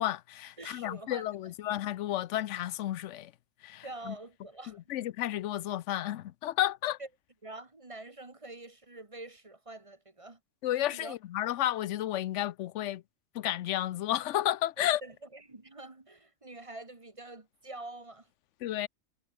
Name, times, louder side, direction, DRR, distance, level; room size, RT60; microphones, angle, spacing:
voice 1, 0.0-3.3 3.6-4.1 4.7-7.0 10.6-13.0 13.3-15.0 18.6-18.9, left 13 dB, 85° left, 0.9 m, -32 dB
voice 2, 0.6-1.5 3.8-4.8 7.0-7.1 7.4-10.4 10.9-11.2 14.8-18.3, right 2 dB, 30° right, 1.6 m, -46 dB
omnidirectional pair, 1.2 m